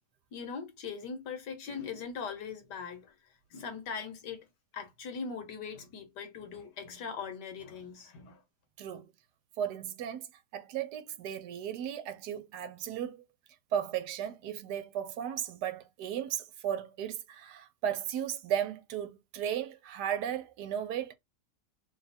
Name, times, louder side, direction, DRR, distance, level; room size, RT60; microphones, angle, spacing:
voice 1, 0.3-3.1 3.5-4.4 4.7-8.4, left 6 dB, 80° left, 1.6 m, -40 dB
voice 2, 8.8-9.1 9.6-10.3 10.5-13.2 13.7-21.1, right 9 dB, 75° right, 1.2 m, -35 dB
3.4 x 2.4 x 4.1 m
omnidirectional pair, 1.8 m